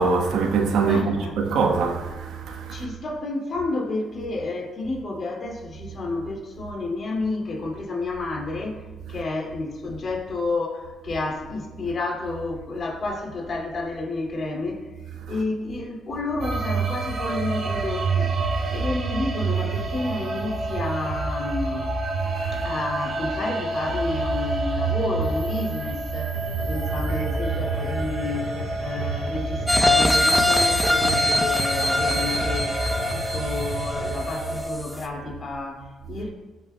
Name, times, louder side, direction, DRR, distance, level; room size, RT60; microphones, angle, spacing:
voice 1, 0.0-2.9 15.3-15.4 22.4-22.5, right 4 dB, 85° right, 1.2 m, -23 dB
voice 2, 0.8-1.4 2.7-14.9 15.3-18.3 18.7-21.9 22.5-36.3, left 2 dB, 50° left, 2.4 m, -30 dB
sound 1, 16.4-34.7, right 3 dB, 60° right, 1.6 m, -28 dB
sound 2, 26.3-34.3, left 2 dB, 85° left, 1.9 m, -36 dB
sound 3, 29.7-34.4 34.8-34.9, left 1 dB, 10° left, 0.8 m, -22 dB
17.0 x 6.7 x 2.3 m
cardioid pair, 90°, 0 cm